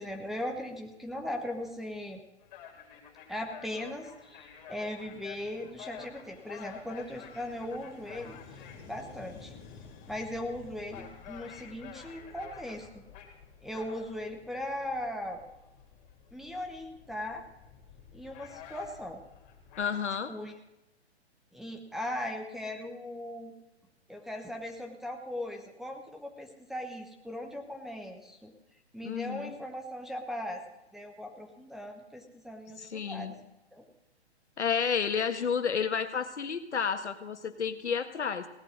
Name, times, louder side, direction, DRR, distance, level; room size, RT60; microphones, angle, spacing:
voice 1, 0.0-2.2 3.3-8.4 8.9-9.5 10.1-13.0 13.6-15.4 16.3-17.4 18.1-19.2 20.3-20.5 21.5-23.5 24.1-28.5 28.9-30.6 30.9-33.4 33.7-33.8, left 1 dB, ahead, 1 dB, 1.1 m, -38 dB
sound 1, 2.4-19.9, left 8 dB, 40° left, 3.8 m, -50 dB
voice 2, 19.8-20.3 29.0-29.6 32.8-33.3 34.6-38.5, left 6 dB, 85° left, 9 dB, 1.6 m, -31 dB
17.5 x 7.8 x 9.4 m, 0.93 s
hypercardioid pair, 135°, 34 cm